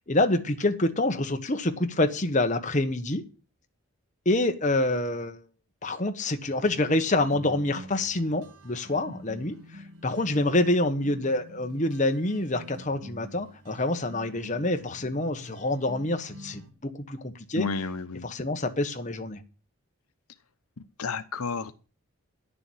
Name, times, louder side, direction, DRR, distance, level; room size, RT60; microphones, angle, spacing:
voice 1, 0.0-3.2 4.2-5.4 5.8-17.7 18.2-19.4, left 2 dB, 35° left, 1.3 m, -27 dB
sound 1, 6.4-16.7, equal, 90° right, 1.8 m, -47 dB
voice 2, 17.6-18.3 21.0-21.7, left 4 dB, 85° left, 0.9 m, -31 dB
10.5 x 7.0 x 8.5 m
head